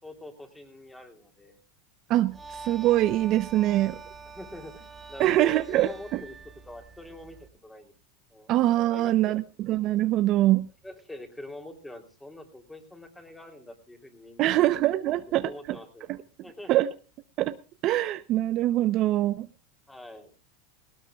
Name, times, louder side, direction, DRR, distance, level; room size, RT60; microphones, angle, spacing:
voice 1, 0.0-1.6 4.3-7.9 8.3-8.5 8.9-9.4 10.8-14.6 15.0-16.1 16.4-16.9 19.9-20.3, left 1 dB, 5° left, 6 dB, 3.3 m, -44 dB
sound 1, 2.1-7.0, equal, 45° left, 7.9 m, -64 dB
voice 2, 2.1-4.0 5.2-6.2 8.5-10.7 14.4-15.8 16.1-16.2 16.7-16.9 17.4-17.6 17.8-19.5, right 15 dB, 45° right, 12 dB, 0.7 m, -24 dB
sound 2, 2.3-7.5, right 4 dB, 15° right, 2.2 m, -45 dB
18.5 x 17.5 x 2.4 m, 0.33 s
supercardioid pair, 125°, 0 cm